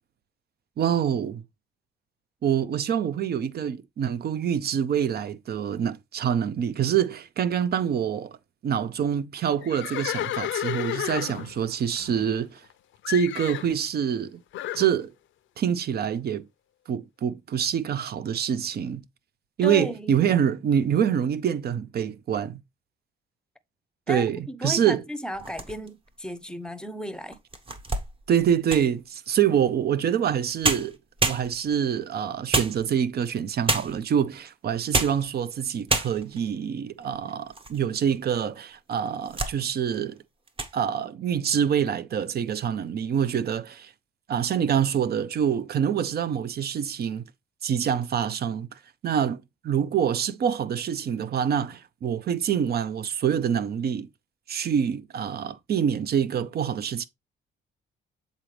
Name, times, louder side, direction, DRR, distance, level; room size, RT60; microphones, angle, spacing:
voice 1, 0.8-1.4 2.4-8.4 8.6-12.6 13.1-14.4 14.7-15.1 15.6-16.5 16.9-19.0 19.6-22.6 24.1-25.0 28.3-31.0 31.3-40.2 40.7-43.9 44.3-47.2 47.6-54.1 54.5-57.1, right 8 dB, 55° right, 0.6 m, -26 dB
Livestock farm animals working animals, 9.6-12.7 13.0-13.7 14.5-14.9, left 13 dB, 75° left, 0.6 m, -32 dB
voice 2, 19.6-20.2 24.1-27.4, left 1 dB, 5° left, 0.7 m, -34 dB
sound 1, 25.3-26.1 26.7-26.8 27.3-29.0 30.3-30.4 30.6-31.8 32.5-33.2 33.7-34.1 34.7-35.3 35.6-35.7 35.9-36.4 37.0-37.8 38.1-38.2 38.9-39.6 39.9-40.2 40.5-40.8, right 2 dB, 25° right, 1.0 m, -28 dB
7.4 x 4.0 x 3.2 m
cardioid pair, 90°, 20 cm